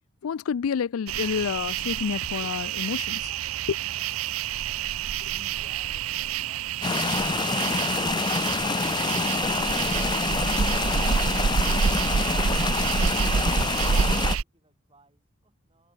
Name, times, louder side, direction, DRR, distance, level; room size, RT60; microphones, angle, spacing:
voice 1, 0.2-3.3 3.7-3.8, left 7 dB, 90° left, 0.4 m, -29 dB
sound 1, 1.1-14.4, right 7 dB, 85° right, 0.5 m, -27 dB
voice 2, 5.2-8.9 9.5-15.9, right 1 dB, 25° right, 7.0 m, -60 dB
sound 2, 6.8-14.4, left 4 dB, 20° left, 0.3 m, -27 dB
head